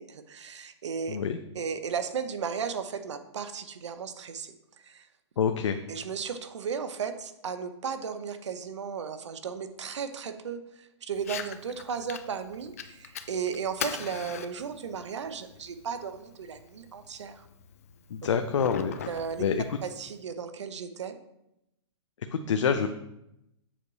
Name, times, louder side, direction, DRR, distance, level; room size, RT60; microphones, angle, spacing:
voice 1, 0.0-1.2 1.5-5.1 5.9-17.5 19.1-19.4 19.8-21.2, right 6 dB, 75° right, 9 dB, 0.9 m, -35 dB
voice 2, 5.4-5.8 18.1-19.0 19.4-19.6 22.3-22.9, left 6 dB, 85° left, 7 dB, 0.6 m, -26 dB
Fire, 11.1-20.1, left 8 dB, 30° left, 0.4 m, -42 dB
7.4 x 4.8 x 4.1 m, 0.85 s
hypercardioid pair, 180°, 15 cm